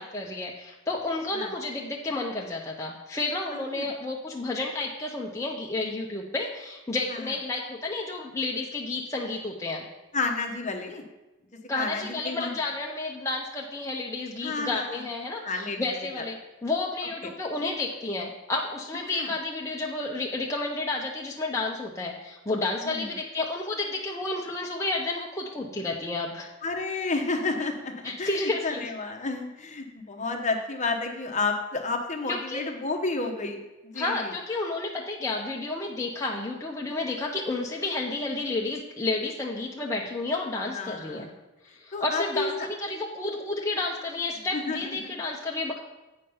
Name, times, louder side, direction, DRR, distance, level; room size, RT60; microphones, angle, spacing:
voice 1, 0.0-9.9 11.7-26.5 28.0-28.9 32.3-32.6 34.0-41.3 41.8-45.8, left 2 dB, 15° left, -2 dB, 0.7 m, -31 dB
voice 2, 10.1-11.0 11.7-12.5 14.4-15.0 15.4-15.9 16.2-16.3 19.1-19.3 22.8-23.2 26.6-33.6 33.8-34.3 40.7-41.3 41.9-42.5 44.5-45.2, left 3 dB, 35° left, 4 dB, 1.0 m, -31 dB
8.7 x 5.2 x 5.5 m, 1.1 s
head